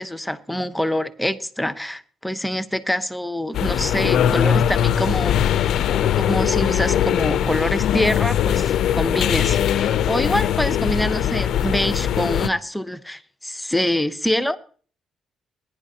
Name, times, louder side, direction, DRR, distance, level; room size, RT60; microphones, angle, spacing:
voice 1, 0.0-5.4 5.7-14.6, left 1 dB, 5° left, 0.8 m, -25 dB
sound 1, 3.5-12.5, left 10 dB, 75° left, 0.5 m, -20 dB
20.5 x 10.0 x 2.8 m
cardioid pair, 90°, 0 cm